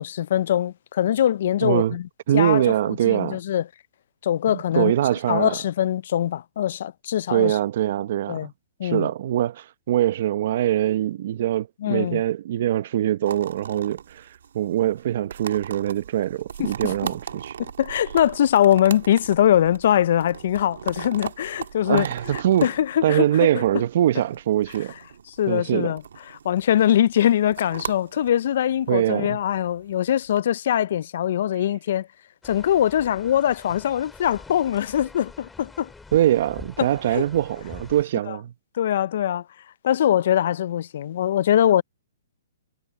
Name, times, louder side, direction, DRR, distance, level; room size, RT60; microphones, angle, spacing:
voice 1, 0.0-2.1 2.3-3.7 4.2-4.9 5.3-7.6 8.3-8.5 8.8-9.1 11.8-12.2 16.6-16.9 17.8-23.6 25.4-26.0 26.4-32.1 32.4-35.9 36.8-37.2 38.3-38.4 38.7-39.4 39.8-41.8, left 11 dB, 55° left, 0.4 m, -22 dB
voice 2, 1.6-2.0 2.3-3.4 4.5-5.6 7.3-8.5 8.8-14.3 14.5-17.5 21.8-22.7 23.0-24.9 25.5-25.9 28.9-29.4 36.1-38.5, right 12 dB, 55° right, 0.8 m, -23 dB
sound 1, 13.2-30.4, right 8 dB, 75° right, 1.4 m, -39 dB
sound 2, 32.4-38.0, left 3 dB, 5° left, 2.6 m, -45 dB
hypercardioid pair, 150°, 0 cm